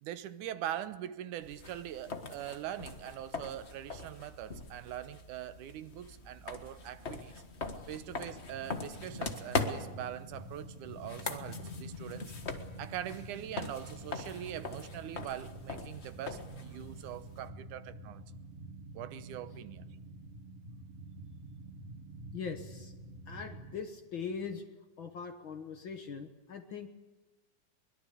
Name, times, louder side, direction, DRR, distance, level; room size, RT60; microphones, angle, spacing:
voice 1, 0.0-7.3 7.9-12.3 12.8-18.3 18.9-19.9, right 11 dB, 90° right, 2.5 m, -42 dB
sound 1, 1.4-17.5, left 3 dB, 35° left, 1.0 m, -41 dB
sound 2, 7.8-23.8, right 2 dB, 55° right, 4.0 m, -49 dB
voice 2, 22.3-22.9 23.3-24.6 25.0-26.9, left 6 dB, 50° left, 1.6 m, -41 dB
23.0 x 21.5 x 8.4 m
omnidirectional pair, 3.5 m